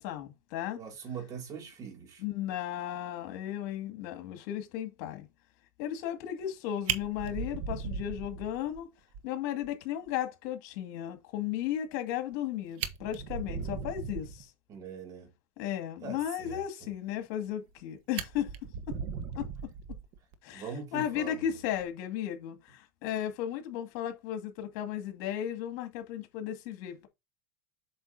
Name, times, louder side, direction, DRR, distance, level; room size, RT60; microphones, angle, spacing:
voice 1, 0.0-0.8 2.2-5.3 5.8-8.9 9.2-14.5 15.6-18.5 19.3-19.5 20.4-27.1, left 11 dB, 65° left, 2.2 m, -35 dB
voice 2, 0.8-2.2 14.7-15.3 16.0-16.6 20.5-21.5, right 6 dB, 35° right, 2.5 m, -41 dB
Fire, 6.4-6.5 6.9-8.8 9.1-9.2 9.6-9.7 10.1-10.2 12.3-12.4 12.7-14.4 17.3-17.8 18.1-20.3 21.6-21.9, right 7 dB, 55° right, 1.2 m, -37 dB
7.9 x 5.8 x 2.8 m
supercardioid pair, 125°, 10 cm